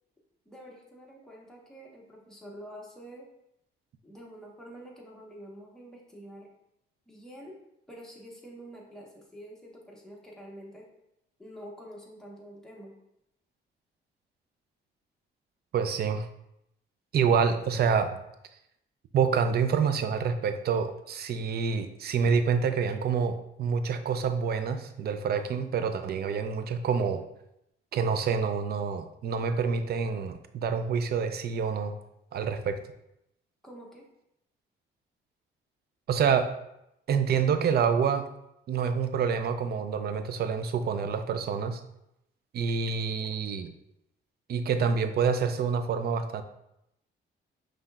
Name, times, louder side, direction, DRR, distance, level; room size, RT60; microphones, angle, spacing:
voice 1, 0.4-3.3 4.0-6.5 7.1-7.6 7.9-10.9 11.4-12.9 33.6-34.0, equal, 5° left, -2 dB, 1.1 m, -47 dB
voice 2, 15.7-16.3 17.1-18.1 19.1-27.2 27.9-31.9 32.3-32.8 36.1-36.5 37.1-38.2 38.7-41.8 42.5-43.7 44.5-46.4, right 6 dB, 55° right, 9 dB, 0.5 m, -27 dB
5.5 x 3.3 x 2.4 m, 0.82 s
cardioid pair, 90°, 20 cm